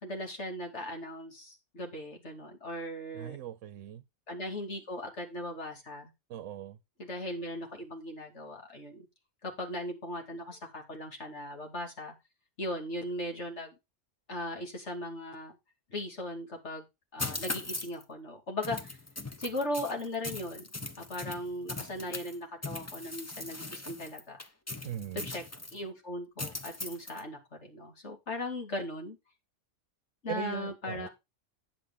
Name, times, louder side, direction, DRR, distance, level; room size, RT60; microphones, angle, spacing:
voice 1, 0.0-3.4 4.3-6.1 7.0-9.1 9.4-12.1 12.6-13.8 14.3-15.6 15.9-16.8 17.1-19.0 19.4-20.7 21.0-24.4 25.2-25.4 25.7-29.2 30.2-31.1, left 1 dB, 65° left, 3.0 m, -38 dB
voice 2, 3.1-4.0 6.3-6.8 24.8-25.3 30.3-31.1, right 11 dB, 85° right, 1.0 m, -39 dB
sound 1, 17.2-18.0 18.6-22.4 22.6-25.8 26.4-27.2, left 2 dB, 15° left, 0.7 m, -39 dB
9.9 x 7.8 x 3.8 m
omnidirectional pair, 1.3 m